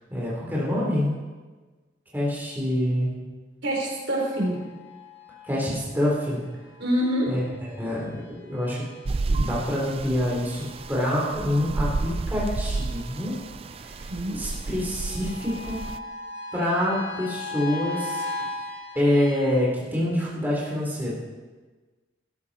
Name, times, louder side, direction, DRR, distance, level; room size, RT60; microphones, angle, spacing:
voice 1, 0.1-1.1 2.1-3.1 5.4-6.4 7.3-7.4 7.8-8.9 9.3-13.3 14.0-15.8 16.5-18.2 18.9-21.1, left 1 dB, 10° right, -6 dB, 3.7 m, -26 dB
voice 2, 3.6-4.6 6.8-7.3 14.1-14.4, equal, 70° right, -2 dB, 3.9 m, -25 dB
sound 1, 4.2-19.6, left 2 dB, 60° left, 1.8 m, -40 dB
sound 2, 9.0-16.0, right 3 dB, 30° right, 0.3 m, -31 dB
16.0 x 13.5 x 4.3 m, 1.3 s
head